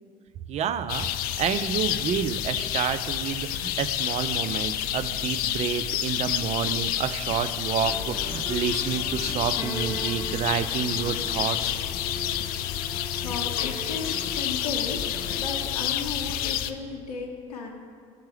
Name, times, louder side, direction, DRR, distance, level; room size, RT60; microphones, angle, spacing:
voice 1, 0.5-1.1 1.4-11.7, right 8 dB, 35° right, 12 dB, 0.4 m, -29 dB
sound 1, 0.9-16.7, left 11 dB, 50° left, 0.4 m, -29 dB
sound 2, 7.8-15.9, left 1 dB, 25° left, 0.7 m, -39 dB
voice 2, 13.2-17.7, left 4 dB, 85° left, 2 dB, 0.6 m, -35 dB
12.0 x 4.4 x 3.4 m, 2.3 s
hypercardioid pair, 70°, 19 cm